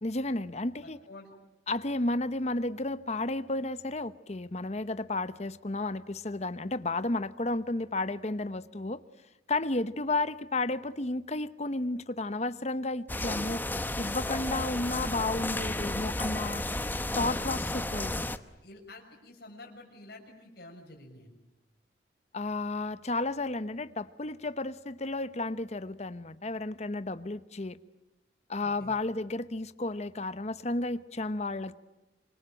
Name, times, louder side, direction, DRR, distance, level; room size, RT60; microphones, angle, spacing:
voice 1, 0.0-1.0 1.7-9.0 9.5-13.6 14.0-16.6 17.2-18.3 22.3-27.8 28.5-31.7, left 2 dB, 35° left, 14 dB, 0.9 m, -32 dB
sound 1, 13.1-18.4, left 1 dB, 10° left, 0.9 m, -33 dB
voice 2, 18.6-21.4 28.6-29.0, left 2 dB, 60° left, 0 dB, 6.3 m, -49 dB
26.5 x 24.5 x 9.0 m, 0.99 s
head